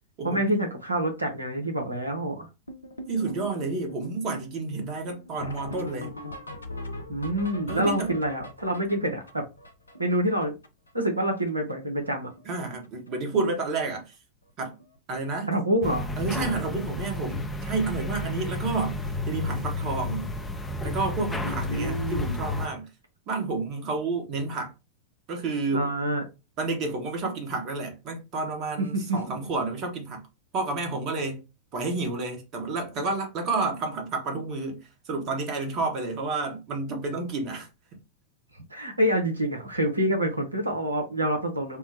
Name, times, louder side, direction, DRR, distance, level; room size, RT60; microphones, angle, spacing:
voice 1, 0.2-2.5 7.1-9.4 10.0-10.5 10.9-12.3 15.5-16.1 21.4-22.4 25.7-26.2 28.8-29.3 38.7-41.8, right 1 dB, 85° right, 0.7 m, -27 dB
sound 1, 2.7-10.9 11.2-11.3 11.5-11.7 12.0-12.5 12.8-13.1 13.9-14.0 14.4-14.5 14.8-15.0 17.2-17.3 19.6-19.7, left 1 dB, 80° left, 0.4 m, -41 dB
voice 2, 3.1-6.1 7.7-8.1 12.4-14.1 14.6-14.7 15.1-15.5 16.2-19.0 19.3-20.3 20.8-22.9 23.3-24.7 25.3-25.9 26.6-30.2 30.5-31.4 31.7-37.7, right 3 dB, 40° right, 1.0 m, -30 dB
sound 2, 15.8-22.7, left 2 dB, 10° left, 0.5 m, -31 dB
3.7 x 2.0 x 2.7 m
figure-of-eight pair, 90°, 0 cm